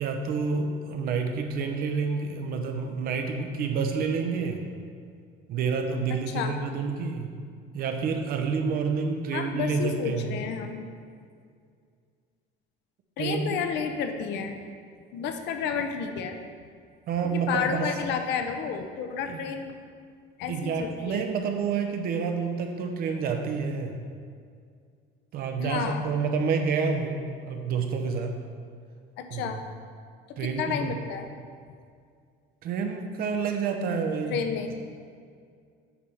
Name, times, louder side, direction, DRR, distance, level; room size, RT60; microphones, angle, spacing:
voice 1, 0.0-4.6 5.5-7.3 7.7-10.4 13.2-13.6 17.1-17.9 19.3-19.4 20.5-23.9 25.3-28.3 29.3-29.5 30.4-30.9 32.6-34.4, right 5 dB, 45° right, 4 dB, 0.7 m, -28 dB
voice 2, 6.1-6.5 9.3-10.9 13.2-14.6 15.1-16.4 17.2-19.8 20.4-21.2 25.6-26.1 29.2-29.7 30.3-31.3 34.3-34.7, left 6 dB, 60° left, 6 dB, 0.6 m, -31 dB
8.6 x 3.4 x 5.4 m, 2.2 s
cardioid pair, 175°, 21 cm